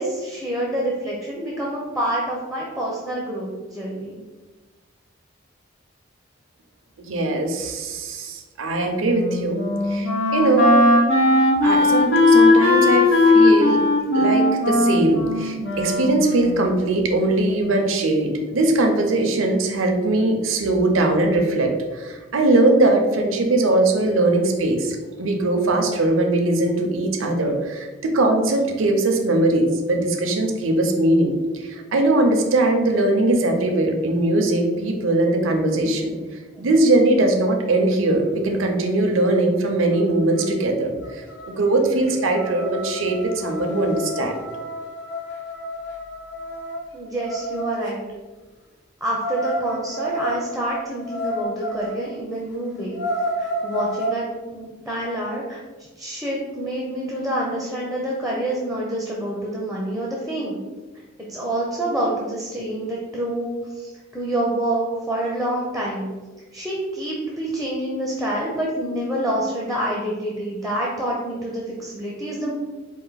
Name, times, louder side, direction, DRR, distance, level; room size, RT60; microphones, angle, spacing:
voice 1, 0.0-4.2 46.9-48.1 49.0-53.0 53.4-54.3 54.5-60.6 61.3-66.1 66.5-72.5, right 1 dB, ahead, -4 dB, 0.5 m, -27 dB
voice 2, 7.0-9.6 9.9-10.8 11.6-13.8 14.1-36.2 36.6-44.3, right 2 dB, 80° right, 3 dB, 0.6 m, -20 dB
Wind instrument woodwind instrument, 9.0-16.8, left 2 dB, 80° left, 1.1 m, -18 dB
sound 1, 40.0-40.1 40.3-40.7 41.0-47.9 49.2-52.0 52.4-52.5 52.8-54.2, equal, 55° left, 0.8 m, -30 dB
4.5 x 2.5 x 3.9 m, 1.3 s
head